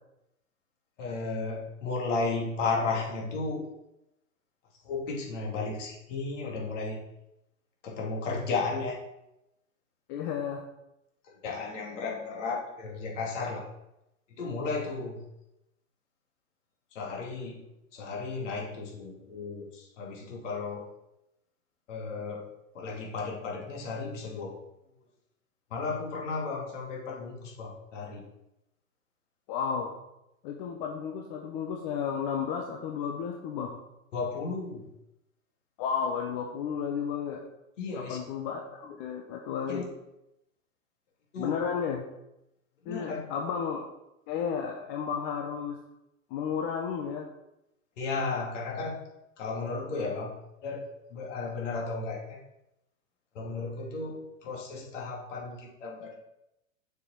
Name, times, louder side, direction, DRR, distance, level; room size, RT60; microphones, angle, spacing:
voice 1, 1.0-3.7 4.8-7.0 7.8-9.0 11.3-13.7 14.3-15.2 16.9-17.6 17.9-20.9 21.9-24.7 25.7-28.2 34.1-34.8 37.8-38.2 39.7-39.8 41.3-41.6 42.8-43.2 48.0-49.0 49.4-50.4 50.6-52.4 53.3-56.1, left 4 dB, 60° left, -2 dB, 2.7 m, -34 dB
voice 2, 10.1-10.6 29.5-30.0 30.4-33.8 35.8-37.4 37.9-39.9 41.4-42.0 42.8-43.8 44.3-45.8 46.3-47.3, left 7 dB, 40° left, 2 dB, 0.9 m, -33 dB
6.6 x 5.0 x 5.0 m, 0.88 s
hypercardioid pair, 105°, 40 cm